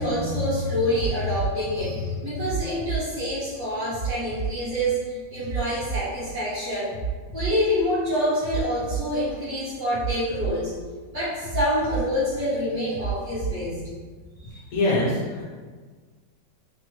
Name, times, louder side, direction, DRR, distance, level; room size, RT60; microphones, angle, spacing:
voice 1, 0.0-6.9 7.3-10.7 11.1-13.8 14.5-14.6, equal, 55° right, -10 dB, 1.5 m, -26 dB
sound 1, 0.9-1.5 2.4-3.0 3.9-4.5 5.4-6.0 6.9-7.5 8.4-9.0 9.9-10.5 11.4-12.0 12.9-13.5 14.4-14.5, right 7 dB, 80° left, 1.3 m, -29 dB
voice 2, 14.7-15.4, left 1 dB, 60° left, -6 dB, 1.2 m, -23 dB
3.5 x 2.1 x 2.9 m, 1.5 s
omnidirectional pair, 1.9 m